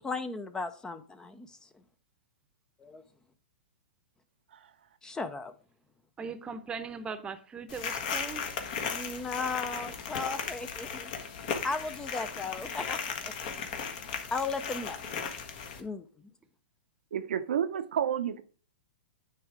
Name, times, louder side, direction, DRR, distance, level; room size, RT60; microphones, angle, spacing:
voice 1, 0.0-1.7 2.8-3.0 5.0-5.5 8.9-11.1 11.6-13.5 14.3-15.0 15.8-16.1, left 4 dB, 10° left, 12 dB, 0.5 m, -36 dB
voice 2, 6.2-8.5, right 5 dB, 15° right, 11 dB, 0.8 m, -39 dB
sound 1, 7.7-15.8, left 6 dB, 50° left, 1.3 m, -36 dB
voice 3, 17.1-18.4, right 9 dB, 70° right, 10 dB, 0.6 m, -30 dB
9.7 x 3.5 x 4.9 m, 0.41 s
hypercardioid pair, 115°, 6 cm